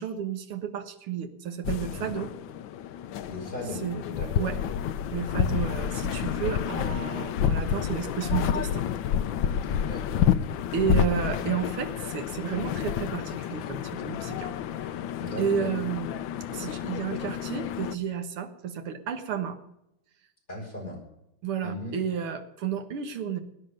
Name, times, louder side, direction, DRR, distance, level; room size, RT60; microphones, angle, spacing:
voice 1, 0.0-2.3 3.8-4.0 4.4-4.6 5.1-8.9 10.7-14.5 14.8-14.9 15.4-16.2 16.5-19.6 21.4-23.4, right 8 dB, 80° right, 6 dB, 2.3 m, -31 dB
sound 1, 1.6-18.0, left 9 dB, 70° left, 1.3 m, -29 dB
voice 2, 3.3-3.8 4.1-4.5 9.7-10.3 11.1-11.2 15.2-15.7 20.5-21.0 21.6-22.0, left 1 dB, 20° left, -1 dB, 5.9 m, -38 dB
18.5 x 9.9 x 6.6 m, 0.85 s
omnidirectional pair, 2.4 m